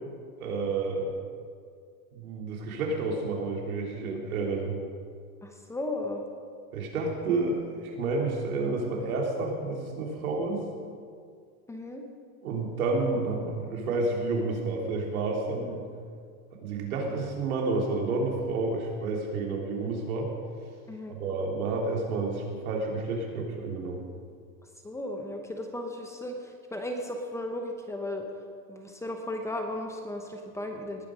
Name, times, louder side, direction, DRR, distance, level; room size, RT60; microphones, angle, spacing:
voice 1, 0.4-1.1 2.1-4.7 6.7-10.6 12.4-15.9 16.6-20.3 21.1-24.0, right 3 dB, 85° right, 0 dB, 3.4 m, -30 dB
voice 2, 5.4-6.2 11.7-12.0 20.9-21.2 24.8-28.2 28.7-31.1, left 1 dB, 5° left, 3 dB, 0.8 m, -35 dB
19.0 x 9.6 x 5.1 m, 2.1 s
supercardioid pair, 150°, 42 cm